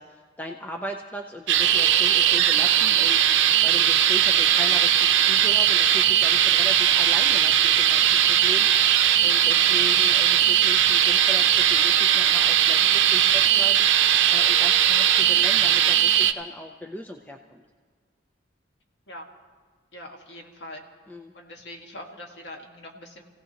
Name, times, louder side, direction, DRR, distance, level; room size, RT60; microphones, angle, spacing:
voice 1, 0.0-3.4 3.6-9.0 9.2-17.6 21.1-21.3, left 1 dB, 10° left, 2 dB, 0.5 m, -38 dB
sound 1, 1.5-16.3, right 10 dB, 85° right, 0.6 m, -19 dB
voice 2, 19.9-20.8 21.3-23.2, left 1 dB, 70° left, 2 dB, 1.7 m, -42 dB
27.5 x 16.5 x 2.9 m, 1.5 s
head